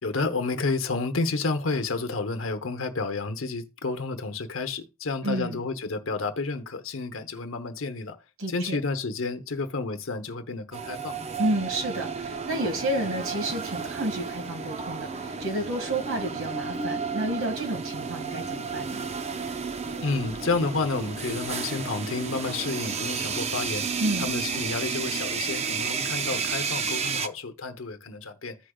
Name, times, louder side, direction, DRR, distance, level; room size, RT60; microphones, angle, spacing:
voice 1, 0.0-8.2 8.5-11.1 20.0-28.6, left 3 dB, 70° left, 0.9 m, -30 dB
voice 2, 5.2-5.6 8.4-8.8 11.4-19.1 24.0-24.3, right 1 dB, 80° right, 1.9 m, -30 dB
sound 1, 10.7-27.3, right 5 dB, 30° right, 0.5 m, -32 dB
15.0 x 5.0 x 2.3 m
head